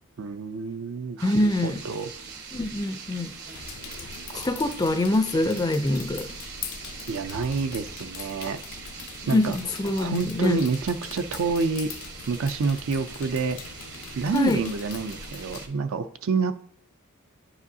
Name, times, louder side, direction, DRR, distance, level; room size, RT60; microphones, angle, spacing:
voice 1, 0.2-1.3 1.6-2.1 4.3-4.5 7.1-8.6 9.3-9.5 10.0-11.9 12.3-13.6 14.2-16.5, right 4 dB, 65° right, 0.4 m, -28 dB
voice 2, 1.2-1.8 2.5-3.3 4.4-6.3 9.2-10.6 14.3-14.6, left 2 dB, 20° left, 0.4 m, -24 dB
sound 1, 1.2-15.7, right 5 dB, 50° right, 1.0 m, -42 dB
sound 2, 3.5-15.7, left 7 dB, 85° left, 0.6 m, -42 dB
9.7 x 4.9 x 2.7 m
head